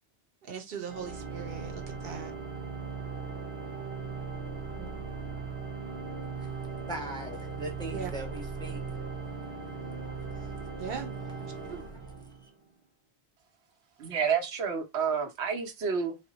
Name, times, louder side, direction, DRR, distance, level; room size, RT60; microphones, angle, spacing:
voice 1, 0.4-2.3 4.7-5.0 7.9-8.1 10.8-11.1 11.4-11.8, right 6 dB, 65° right, 1.0 m, -40 dB
Organ, 0.8-12.7, right 5 dB, 35° right, 0.8 m, -38 dB
voice 2, 6.8-8.9 10.3-10.5, right 1 dB, 5° left, 0.6 m, -40 dB
voice 3, 14.0-16.2, right 6 dB, 85° right, 1.0 m, -29 dB
3.2 x 2.2 x 3.9 m
omnidirectional pair, 1.1 m